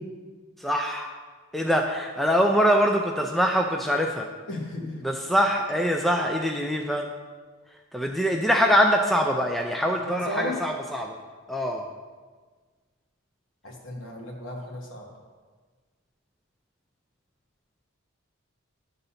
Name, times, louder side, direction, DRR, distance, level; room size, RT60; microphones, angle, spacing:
voice 1, 0.6-1.1 1.5-4.3 5.0-7.1 7.9-11.2 11.5-11.8, equal, ahead, 2 dB, 0.4 m, -23 dB
voice 2, 4.5-4.9 10.0-10.6 13.6-15.1, left 1 dB, 60° left, 0 dB, 1.5 m, -34 dB
11.0 x 4.0 x 5.6 m, 1.4 s
head